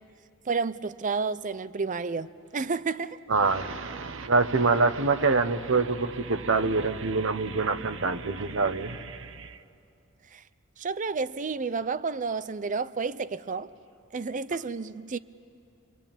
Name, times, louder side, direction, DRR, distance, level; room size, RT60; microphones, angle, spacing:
voice 1, 0.5-3.2 10.3-10.4 10.8-13.7 14.1-15.2, right 4 dB, 40° right, 0.6 m, -31 dB
voice 2, 3.3-9.6, right 3 dB, 65° right, 1.0 m, -25 dB
29.0 x 23.0 x 9.0 m
head